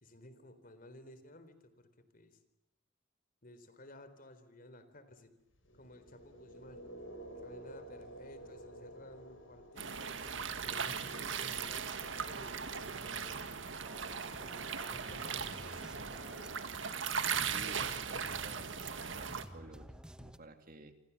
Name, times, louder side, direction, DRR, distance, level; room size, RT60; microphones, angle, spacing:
voice 1, 0.0-2.4 3.4-5.3 5.7-6.8 7.4-10.2 10.6-13.6 14.4-16.7, left 1 dB, 45° left, 11 dB, 3.8 m, -55 dB
sound 1, 5.5-13.6, right 1 dB, 85° left, 7.0 m, -52 dB
sound 2, 9.8-19.4, right 6 dB, 75° right, 2.0 m, -38 dB
sound 3, 13.8-20.4, equal, 5° right, 1.1 m, -53 dB
voice 2, 17.5-20.9, right 2 dB, 45° right, 7 dB, 2.6 m, -53 dB
29.0 x 25.0 x 7.2 m, 0.91 s
head